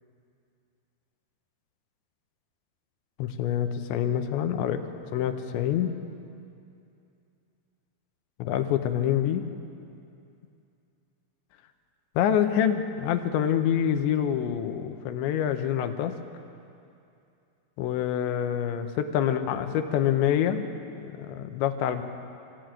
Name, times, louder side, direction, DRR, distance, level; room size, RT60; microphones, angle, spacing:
voice 1, 3.2-4.8 5.1-6.0 8.4-9.5 12.2-16.2 17.8-20.7 21.0-22.0, left 9 dB, 90° left, 7 dB, 3.4 m, -26 dB
25.5 x 16.0 x 9.0 m, 2.6 s
omnidirectional pair, 5.1 m